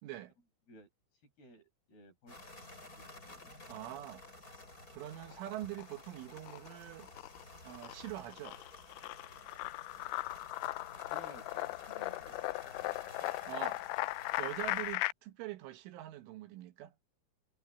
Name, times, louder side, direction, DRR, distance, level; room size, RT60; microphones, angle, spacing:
voice 1, 0.0-0.3 3.6-4.2 4.9-7.1 7.6-8.6 13.5-13.9 14.4-16.9, right 15 dB, 80° right, 3.7 m, -44 dB
voice 2, 1.2-3.9 11.1-12.4 12.8-13.3, left 1 dB, 50° left, 8.7 m, -58 dB
sound 1, 2.3-14.9, left 2 dB, 15° left, 6.9 m, -53 dB
sound 2, 5.2-6.0 6.3-15.1, left 21 dB, 85° left, 3.0 m, -38 dB
omnidirectional pair, 5.7 m